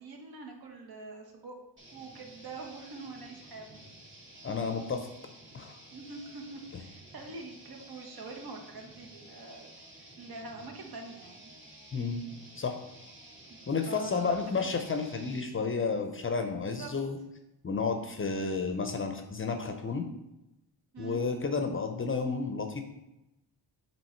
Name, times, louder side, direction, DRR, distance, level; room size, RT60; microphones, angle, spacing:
voice 1, 0.0-1.6 1.9-3.8 5.9-11.5 13.9-14.7 16.4-16.9 20.9-21.2, right 3 dB, 55° right, 2 dB, 1.2 m, -45 dB
sound 1, 1.8-15.5, right 1 dB, 25° right, 2.1 m, -52 dB
voice 2, 4.4-5.1 5.5-5.8 11.9-12.2 12.5-12.8 13.7-17.2 17.6-20.0 21.0-22.8, left 4 dB, 30° left, 6 dB, 0.6 m, -31 dB
7.3 x 3.1 x 4.4 m, 0.92 s
cardioid pair, 105°, 43 cm